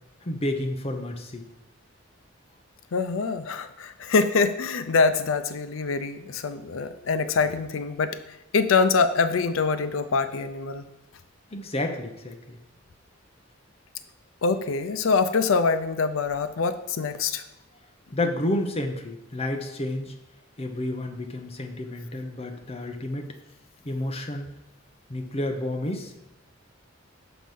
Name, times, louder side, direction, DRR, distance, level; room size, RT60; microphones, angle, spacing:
voice 1, 0.2-1.4 11.5-12.6 18.1-20.1 20.6-23.3 23.8-24.5 25.1-26.3, left 1 dB, 30° left, 4 dB, 0.9 m, -30 dB
voice 2, 2.9-8.2 8.5-10.8 14.4-17.4, left 4 dB, 85° left, 11 dB, 0.5 m, -24 dB
6.2 x 6.0 x 5.3 m, 0.87 s
head